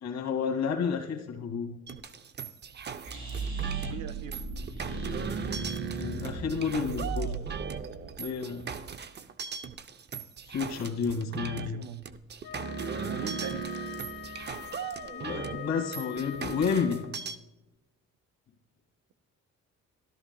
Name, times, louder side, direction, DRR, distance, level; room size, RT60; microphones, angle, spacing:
voice 1, 0.0-1.8 6.0-7.6 8.2-8.7 10.5-11.9 15.1-17.1, left 6 dB, 65° left, 5 dB, 2.0 m, -31 dB
sound 1, 1.9-17.4, right 6 dB, 35° right, 0.6 m, -38 dB
sound 2, 3.0-8.1, right 3 dB, 70° right, 3.3 m, -36 dB
voice 2, 3.8-4.4 11.6-12.0 13.1-13.7, right 9 dB, 85° right, 14 dB, 0.7 m, -40 dB
Wind instrument woodwind instrument, 12.4-17.3, left 8 dB, 90° left, 0.7 m, -43 dB
13.5 x 12.5 x 2.3 m, 1.0 s
cardioid pair, 90°, 30 cm